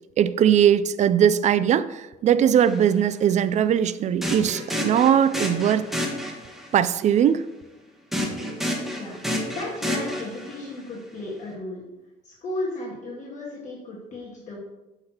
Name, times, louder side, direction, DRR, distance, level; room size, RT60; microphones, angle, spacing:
voice 1, 0.2-5.9 6.7-7.4, right 9 dB, 45° right, 14 dB, 0.4 m, -20 dB
sound 1, 2.6-2.8 4.2-6.7 8.1-10.7, equal, ahead, 1.3 m, -29 dB
voice 2, 8.9-11.8 12.2-14.6, left 2 dB, 45° left, -4 dB, 1.6 m, -35 dB
7.9 x 5.7 x 2.9 m, 1.0 s
cardioid pair, 110°, 17 cm